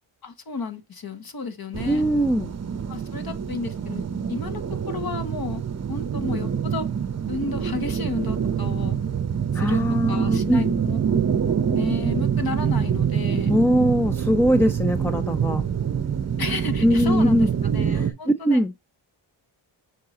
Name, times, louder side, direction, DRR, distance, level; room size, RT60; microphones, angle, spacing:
voice 1, 0.2-2.1 2.9-4.0 4.3-4.6 4.9-5.6 5.9-6.9 7.3-9.0 9.5-11.0 11.7-13.5 16.4-17.5 17.7-18.6, left 4 dB, 45° left, 1.5 m, -32 dB
sound 1, 1.7-18.1, right 7 dB, 35° right, 0.7 m, -25 dB
voice 2, 1.9-2.5 9.5-10.7 13.5-15.6 16.8-17.5 17.9-18.7, equal, 5° left, 0.4 m, -21 dB
6.6 x 4.7 x 4.1 m
cardioid pair, 75°, 49 cm